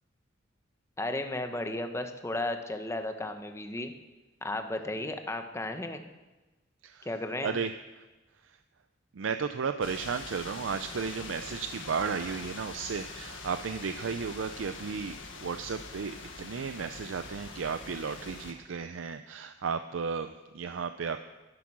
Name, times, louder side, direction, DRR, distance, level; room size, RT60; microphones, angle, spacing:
voice 1, 1.0-3.9 4.4-6.1 7.0-7.6, left 2 dB, 15° left, 6 dB, 1.0 m, -34 dB
voice 2, 6.8-8.1 8.4-8.6 9.1-21.2, right 5 dB, 85° right, 9 dB, 0.5 m, -34 dB
sound 1, 9.8-18.5, left 4 dB, 75° left, 1.6 m, -44 dB
12.0 x 11.0 x 6.1 m, 1.1 s
head